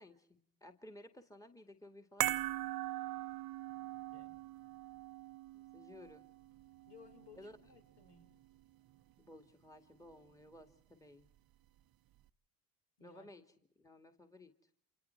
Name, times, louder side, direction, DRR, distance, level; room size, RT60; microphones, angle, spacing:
voice 1, 0.0-2.4 5.5-6.3 7.3-7.6 9.2-11.3 13.0-13.4 13.8-14.5, left 1 dB, 5° left, 5 dB, 2.2 m, -56 dB
sound 1, 2.2-8.6 8.9-9.0, right 14 dB, 50° right, 1.0 m, -41 dB
voice 2, 6.9-8.3 13.0-13.3, left 5 dB, 65° left, 4 dB, 5.2 m, -60 dB
29.0 x 27.0 x 4.6 m, 0.64 s
hypercardioid pair, 70°, 45 cm